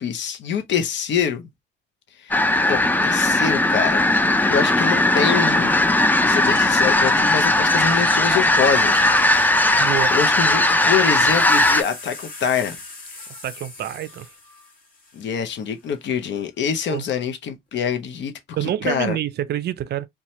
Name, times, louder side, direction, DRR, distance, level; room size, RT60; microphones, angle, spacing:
voice 1, 0.0-1.5 2.2-2.4 2.7-4.0 4.5-5.7 6.2-9.1 10.1-12.8 15.1-19.2, left 7 dB, 65° left, 0.6 m, -25 dB
sound 1, 2.3-11.8, left 2 dB, 10° left, 0.3 m, -18 dB
sound 2, 6.3-11.5, right 2 dB, 15° right, 1.0 m, -39 dB
sound 3, 8.2-8.3 8.6-16.0 16.9-17.3, left 2 dB, 45° left, 1.3 m, -42 dB
voice 2, 9.8-10.2 13.4-14.3 16.9-17.0 18.5-20.1, right 12 dB, 55° right, 0.4 m, -27 dB
2.7 x 2.2 x 3.0 m
cardioid pair, 90°, 20 cm